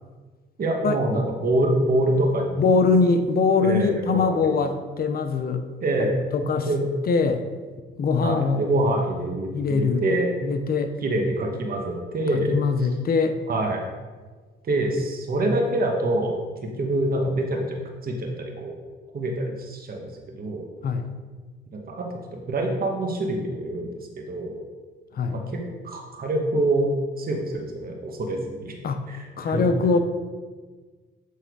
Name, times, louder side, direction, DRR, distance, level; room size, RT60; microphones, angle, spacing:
voice 1, 0.6-2.9 3.6-4.5 5.8-6.1 6.7-6.8 8.2-10.3 11.0-12.9 13.5-13.9 14.6-17.8 18.0-18.8 19.1-20.7 21.7-24.6 25.3-26.9 27.2-28.7 29.1-29.7, right 1 dB, 50° right, 1 dB, 1.3 m, -26 dB
voice 2, 2.6-5.6 6.3-6.7 7.1-7.4 8.0-8.6 9.5-10.0 10.4-10.9 12.3-13.4 20.8-21.1 25.1-25.4 28.8-29.0 29.4-30.0, left 4 dB, 50° left, 8 dB, 0.6 m, -22 dB
8.3 x 3.3 x 4.6 m, 1.4 s
cardioid pair, 90°, 20 cm